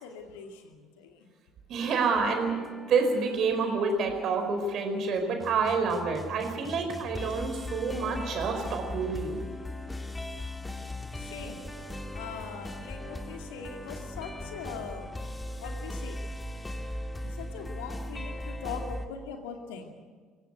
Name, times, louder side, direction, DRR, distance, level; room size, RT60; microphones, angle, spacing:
voice 1, 0.0-1.3 11.1-11.7 12.1-15.1 15.6-16.2 17.2-19.9, left 6 dB, 70° left, 4 dB, 2.4 m, -41 dB
voice 2, 1.7-2.6 2.9-9.4, right 4 dB, 50° right, 5 dB, 4.6 m, -28 dB
sound 1, 1.8-19.1, left 1 dB, 15° left, 2.1 m, -39 dB
24.0 x 16.5 x 8.2 m, 1.5 s
figure-of-eight pair, 55°, 0 cm